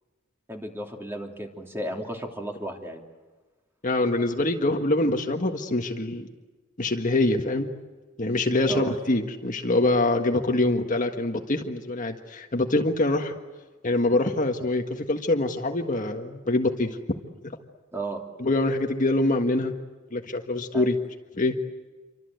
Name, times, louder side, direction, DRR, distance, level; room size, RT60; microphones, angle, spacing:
voice 1, 0.5-3.0 8.7-8.9 17.9-18.2 20.7-20.9, right 1 dB, 10° right, 2 dB, 3.1 m, -34 dB
voice 2, 3.8-6.3 6.8-7.7 8.2-13.4 13.8-17.0 17.4-17.5 18.4-19.7 20.1-21.0 21.4-21.6, left 2 dB, 40° left, 4 dB, 1.6 m, -24 dB
28.5 x 25.0 x 8.1 m, 1.3 s
head